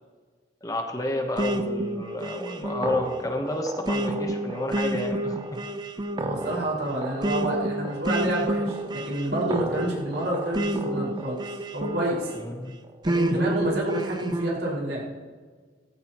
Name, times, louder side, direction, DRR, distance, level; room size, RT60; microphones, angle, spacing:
voice 1, 0.6-5.6 12.3-12.8 13.3-13.6, left 1 dB, 20° left, 4 dB, 1.1 m, -31 dB
sound 1, 1.4-12.4 13.0-14.6, right 1 dB, 25° right, 0.7 m, -29 dB
voice 2, 6.2-11.4 11.7-12.3 13.0-15.1, right 1 dB, 70° right, -5 dB, 5.2 m, -28 dB
17.5 x 15.5 x 3.1 m, 1.5 s
head